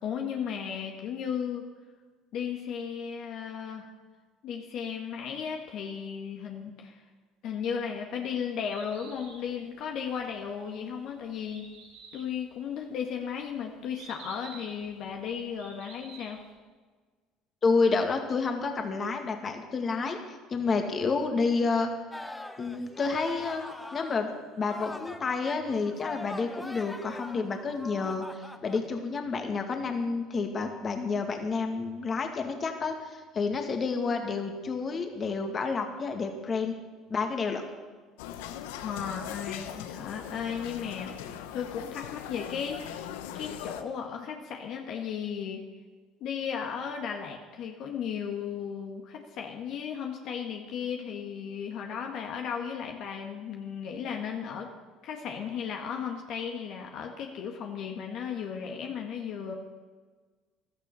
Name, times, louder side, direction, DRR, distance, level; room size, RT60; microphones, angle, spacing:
voice 1, 0.0-1.6 2.3-3.9 4.4-7.0 7.4-11.7 12.1-16.4 38.8-41.1 41.5-42.8 43.3-45.6 46.2-54.7 55.0-59.5, left 7 dB, 60° left, 2 dB, 1.7 m, -35 dB
Bird, 8.5-16.5, right 4 dB, 85° right, 5.2 m, -51 dB
voice 2, 17.6-20.2 20.5-21.9 22.6-23.6 23.9-36.7 37.1-37.6, left 4 dB, 35° left, 4 dB, 2.1 m, -29 dB
sound 1, 22.1-24.3 24.6-28.9, left 1 dB, 10° left, 1.0 m, -42 dB
sound 2, 38.2-43.8, left 10 dB, 90° left, 0.9 m, -40 dB
15.5 x 12.5 x 5.6 m, 1.4 s
supercardioid pair, 90°, 0 cm